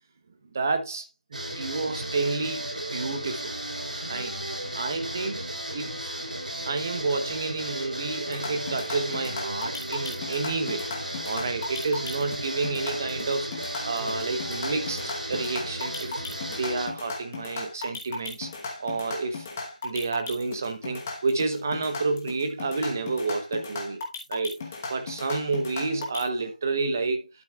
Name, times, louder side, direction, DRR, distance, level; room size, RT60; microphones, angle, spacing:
voice 1, 0.5-2.6 2.9-3.5 4.1-4.3 4.8-5.4 5.7-6.1 6.7-10.9 11.2-16.1 16.5-18.5 18.8-19.5 19.8-24.0 24.3-24.6 24.9-27.3, right 3 dB, 20° right, 0.9 m, -30 dB
sound 1, 1.3-16.9, right 1 dB, 90° right, 3.8 m, -34 dB
sound 2, 8.3-26.2, left 3 dB, 15° left, 1.2 m, -36 dB
11.5 x 6.6 x 2.4 m
figure-of-eight pair, 175°, 4 cm